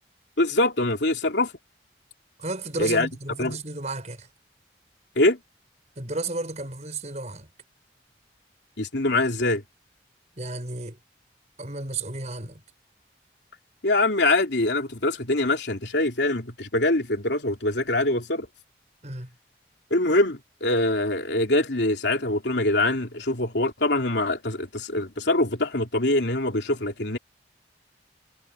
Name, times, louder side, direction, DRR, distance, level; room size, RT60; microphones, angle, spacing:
voice 1, 0.4-1.5 2.8-3.1 3.4-3.6 5.1-5.4 8.8-9.6 13.8-18.5 19.9-27.2, left 2 dB, 75° left, 3.1 m, -24 dB
voice 2, 2.4-4.3 6.0-7.5 10.4-11.0 11.6-12.6 19.0-19.3, right 2 dB, 40° right, 6.2 m, -33 dB
head